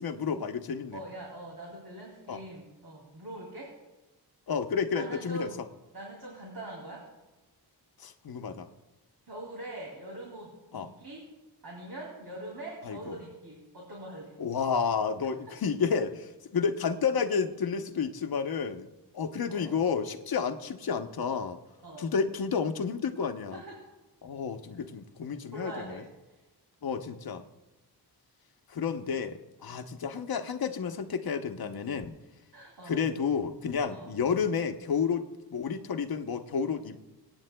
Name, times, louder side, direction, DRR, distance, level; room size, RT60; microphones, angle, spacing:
voice 1, 0.0-1.0 2.3-2.4 4.5-5.5 8.0-8.7 10.7-10.9 12.8-13.1 14.4-18.9 19.1-21.6 22.0-23.6 24.2-26.0 26.8-27.4 28.7-32.1 32.8-37.0, left 6 dB, 60° left, 6 dB, 0.8 m, -31 dB
voice 2, 0.9-3.7 4.9-5.6 5.9-7.0 9.3-10.5 10.8-11.3 11.6-14.3 15.5-15.6 19.5-19.8 21.8-22.1 23.5-23.8 25.5-26.4 32.5-33.1 33.9-34.1, right 1 dB, 65° right, -2 dB, 2.7 m, -43 dB
26.0 x 8.9 x 2.2 m, 1.1 s
wide cardioid pair, 105°, 41 cm